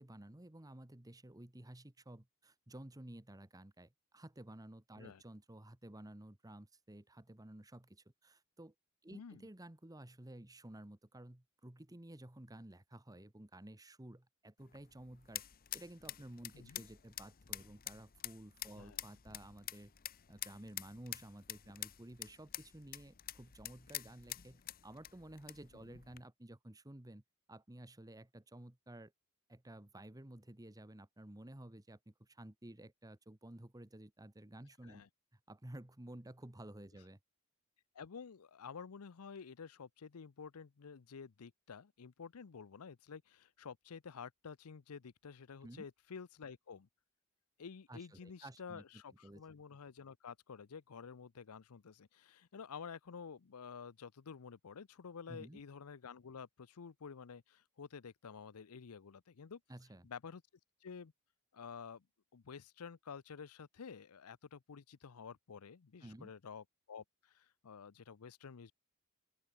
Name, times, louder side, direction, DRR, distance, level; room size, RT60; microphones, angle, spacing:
voice 1, 0.0-8.7 9.0-15.4 15.7-19.9 20.3-27.2 27.5-29.1 29.5-35.0 35.3-37.2 45.6-45.8 47.9-48.8 49.2-49.4 55.3-55.6 59.7-60.1 66.0-66.3, right 1 dB, 15° right, 1.2 m, -53 dB
voice 2, 9.1-9.5 16.5-16.8 18.7-19.0 25.7-26.0 34.8-35.1 37.9-46.9 47.6-59.6 60.0-60.4 60.8-61.1 61.5-62.1 62.3-68.7, left 6 dB, 80° left, 0.6 m, -51 dB
sound 1, 14.6-26.2, left 13 dB, 40° left, 0.8 m, -48 dB
open air
head